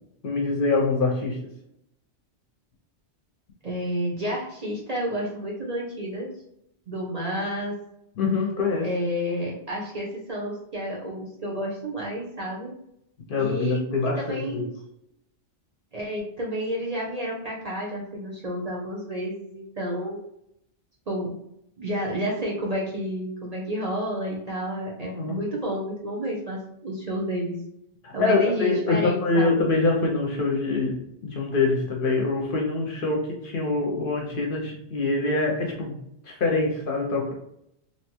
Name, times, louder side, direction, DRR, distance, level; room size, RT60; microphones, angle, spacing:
voice 1, 0.2-1.4 8.2-8.9 13.3-14.7 25.0-25.4 28.0-36.0 36.2-37.3, left 3 dB, 60° left, 0 dB, 0.7 m, -25 dB
voice 2, 3.6-6.3 6.9-7.7 8.8-12.7 13.4-13.8 14.2-14.7 15.9-20.2 21.1-21.3 21.8-27.5 28.1-29.7, equal, 45° right, -4 dB, 0.6 m, -30 dB
2.7 x 2.2 x 2.9 m, 0.77 s
omnidirectional pair, 1.1 m